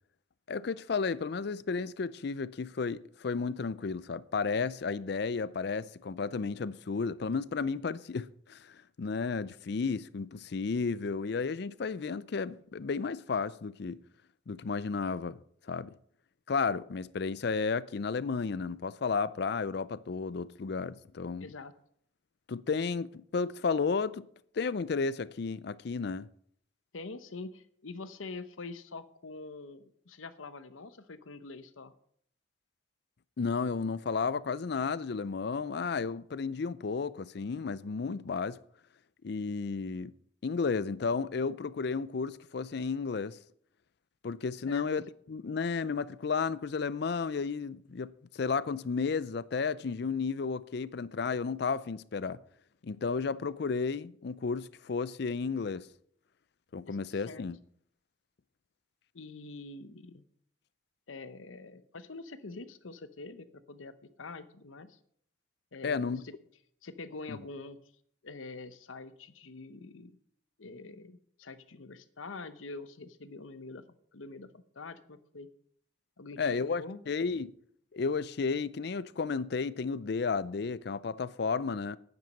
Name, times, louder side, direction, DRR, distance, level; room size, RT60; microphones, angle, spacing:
voice 1, 0.5-14.0 14.5-15.4 15.7-15.9 16.5-21.5 22.5-24.3 24.5-26.3 33.4-38.6 39.2-40.1 40.4-43.4 44.2-52.4 52.8-55.9 56.7-57.6 65.8-66.2 67.3-67.4 76.4-77.5 77.9-82.0, left 5 dB, 55° left, 0.4 m, -33 dB
voice 2, 21.4-21.7 26.9-31.9 44.7-44.8 56.9-57.4 59.1-60.2 61.1-65.0 65.7-66.3 66.8-67.8 68.2-70.2 70.6-73.9 74.1-75.5 76.2-77.0, left 3 dB, 85° left, 0.9 m, -45 dB
10.5 x 9.2 x 5.3 m
head